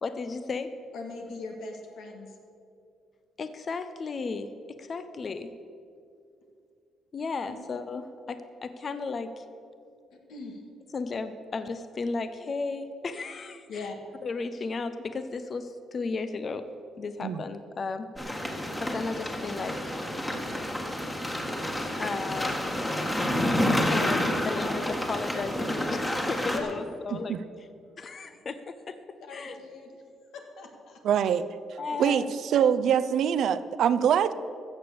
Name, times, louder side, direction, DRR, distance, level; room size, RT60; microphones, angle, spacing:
voice 1, 0.0-0.7 3.4-5.5 7.1-9.4 10.9-13.9 14.2-16.6 17.0-18.1 18.8-19.9 22.0-22.6 23.9-27.4 28.0-29.0 29.3-29.6 31.8-32.3, left 4 dB, 40° left, 10 dB, 0.7 m, -34 dB
voice 2, 0.9-2.3 7.4-7.6 10.1-10.6 13.7-14.0 26.5-26.7 29.2-30.0 30.3-31.0, left 4 dB, 80° left, 3 dB, 2.0 m, -40 dB
sound 1, 18.2-26.6, left 1 dB, 15° left, 1.8 m, -29 dB
voice 3, 31.0-31.5 32.0-32.3 32.5-34.3, right 8 dB, 70° right, 13 dB, 0.5 m, -24 dB
15.0 x 6.9 x 7.0 m, 2.5 s
cardioid pair, 90°, 0 cm